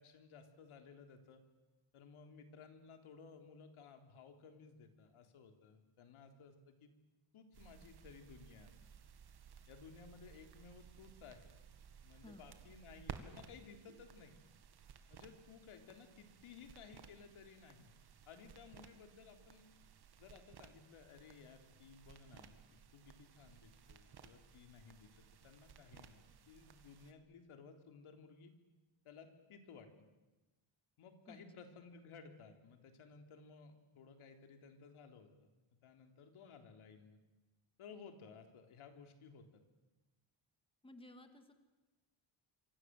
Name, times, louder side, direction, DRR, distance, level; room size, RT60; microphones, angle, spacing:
voice 1, 0.0-1.4 1.9-6.9 7.3-8.7 9.7-11.5 12.0-14.4 15.1-18.0 18.3-19.7 20.2-28.5 29.0-30.1 31.0-37.2 37.8-39.6, left 5 dB, 80° left, 5 dB, 3.7 m, -58 dB
sound 1, 7.5-27.1, right 7 dB, 50° right, 2.2 m, -58 dB
voice 2, 12.1-12.6 31.3-31.4 40.8-41.5, left 1 dB, 10° left, 7 dB, 2.4 m, -57 dB
27.5 x 24.5 x 7.7 m, 1.1 s
cardioid pair, 150°, 49 cm